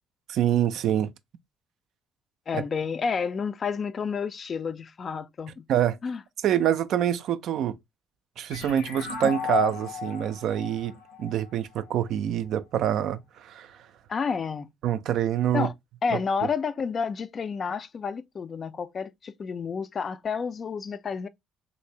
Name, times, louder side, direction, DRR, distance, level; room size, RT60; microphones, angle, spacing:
voice 1, 0.3-1.1 2.5-2.6 5.7-6.0 6.4-7.7 8.4-10.9 11.2-13.7 14.8-15.7, right 10 dB, 60° right, 0.3 m, -26 dB
voice 2, 2.5-5.6 6.0-6.2 14.1-14.7 15.5-15.7 16.0-21.3, left 5 dB, 40° left, 0.4 m, -30 dB
sound 1, 8.5-11.9, left 6 dB, 70° left, 0.7 m, -33 dB
3.1 x 2.6 x 2.7 m
figure-of-eight pair, 50°, 0 cm